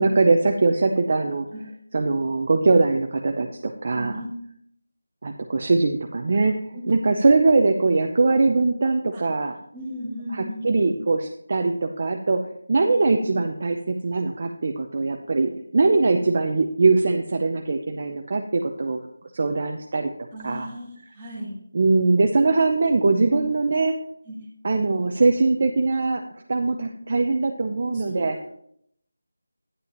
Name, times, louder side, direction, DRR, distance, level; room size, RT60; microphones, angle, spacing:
voice 1, 0.0-1.5 1.9-4.2 5.2-9.5 10.3-12.4 12.7-19.0 19.3-20.1 20.4-20.7 21.7-24.0 24.6-26.2 26.5-28.4, right 3 dB, 30° right, 3 dB, 0.5 m, -21 dB
voice 2, 3.9-4.3 6.7-6.8 9.1-9.3 9.7-10.7 20.3-21.6 24.2-24.4 27.9-28.5, equal, 5° right, -7 dB, 1.5 m, -36 dB
10.5 x 9.7 x 2.9 m, 0.69 s
figure-of-eight pair, 175°, 0 cm